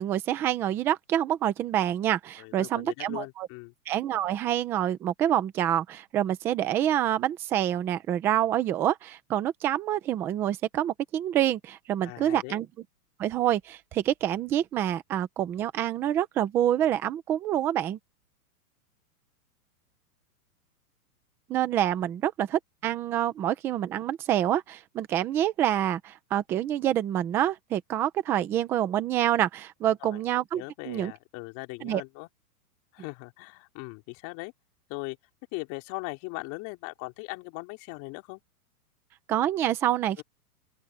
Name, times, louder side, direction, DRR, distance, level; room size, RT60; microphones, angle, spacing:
voice 1, 0.0-3.5 3.9-12.7 13.2-18.0 21.5-31.1 31.8-32.0 39.3-40.2, right 11 dB, 5° right, 0.3 m, -27 dB
voice 2, 2.4-3.7 12.0-12.6 30.0-30.2 30.5-32.3 32.9-34.5 34.9-35.2 35.5-38.4 40.2-40.3, left 26 dB, 40° left, 3.5 m, -39 dB
open air
hypercardioid pair, 135°, 46 cm